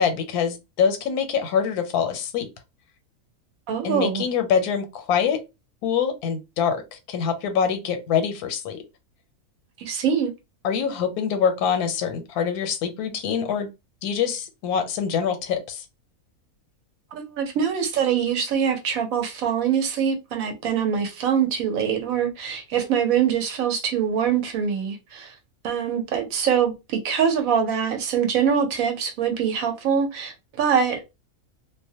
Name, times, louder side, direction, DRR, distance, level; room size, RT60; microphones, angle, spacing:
voice 1, 0.0-2.5 3.8-5.4 5.8-6.8 7.1-8.8 10.6-13.7 14.0-15.8, left 7 dB, 90° left, 1.1 m, -24 dB
voice 2, 3.7-4.2 9.8-10.3 17.1-25.3 25.6-31.0, right 7 dB, 75° right, 1.0 m, -24 dB
2.5 x 2.0 x 2.7 m
omnidirectional pair, 1.6 m